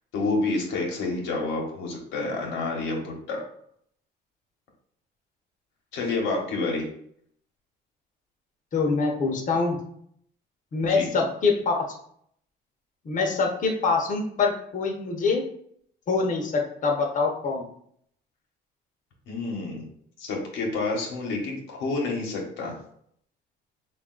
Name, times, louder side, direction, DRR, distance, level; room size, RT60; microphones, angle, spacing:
voice 1, 0.1-3.4 5.9-6.9 10.8-11.1 19.3-19.9 20.2-22.7, left 3 dB, 85° left, 0 dB, 1.0 m, -29 dB
voice 2, 8.7-9.8 10.7-11.8 13.0-15.4 16.1-17.7, left 4 dB, 45° left, 1 dB, 0.8 m, -24 dB
3.5 x 2.4 x 3.7 m, 0.66 s
cardioid pair, 95°, 19 cm